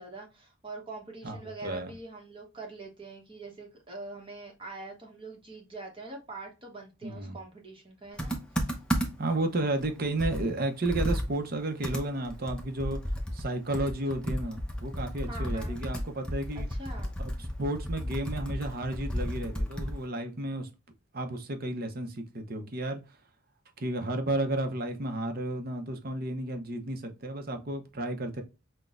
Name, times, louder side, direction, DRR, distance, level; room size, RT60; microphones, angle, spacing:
voice 1, 0.0-8.7 15.3-15.8 16.5-17.1, right 2 dB, 25° right, 1.0 m, -44 dB
voice 2, 7.0-7.4 9.2-13.0 13.3-16.7 17.2-17.3 17.6-20.7 21.1-23.0 23.8-28.4, right 1 dB, 45° right, 0.7 m, -32 dB
Computer keyboard, 8.2-9.4 9.8-9.9 10.2-20.1, equal, 5° left, 0.7 m, -33 dB
5.9 x 2.2 x 2.5 m
head